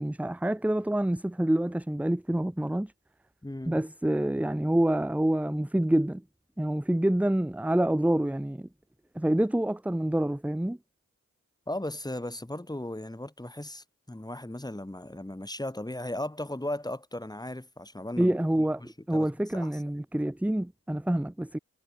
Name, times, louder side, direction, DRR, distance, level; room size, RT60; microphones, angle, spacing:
voice 1, 0.0-2.9 3.7-6.2 6.6-8.7 9.1-10.8 18.2-18.8 19.1-21.6, right 1 dB, 5° right, 0.8 m, -27 dB
voice 2, 3.4-3.8 11.7-18.3 18.8-19.3 19.5-19.7, left 1 dB, 10° left, 3.2 m, -36 dB
cardioid pair, 55°, 34 cm